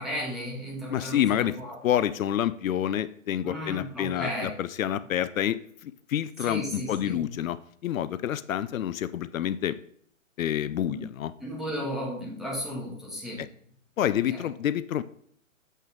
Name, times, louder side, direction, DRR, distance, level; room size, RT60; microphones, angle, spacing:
voice 1, 0.0-1.8 3.4-4.5 6.4-7.2 10.9-11.0 11.4-13.4 14.0-14.5, equal, ahead, -5 dB, 1.5 m, -35 dB
voice 2, 0.9-1.6 1.8-7.6 7.8-9.8 10.4-11.3 13.4-13.5 14.0-15.0, left 11 dB, 80° left, 14 dB, 0.5 m, -28 dB
7.7 x 5.5 x 3.6 m, 0.63 s
hypercardioid pair, 145°, 40 cm